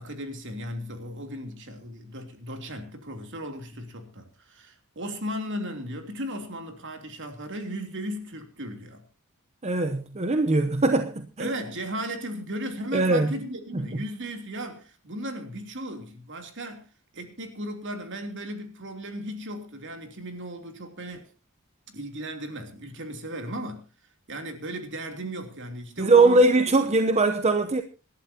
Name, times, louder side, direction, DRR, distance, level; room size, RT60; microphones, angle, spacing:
voice 1, 0.0-9.0 11.4-16.9 17.1-21.3 21.9-23.8 24.3-26.5, equal, 55° right, 3.0 m, -36 dB
voice 2, 9.6-11.5 12.9-13.3 26.0-27.8, right 2 dB, 30° right, 0.8 m, -21 dB
26.5 x 11.5 x 2.8 m
head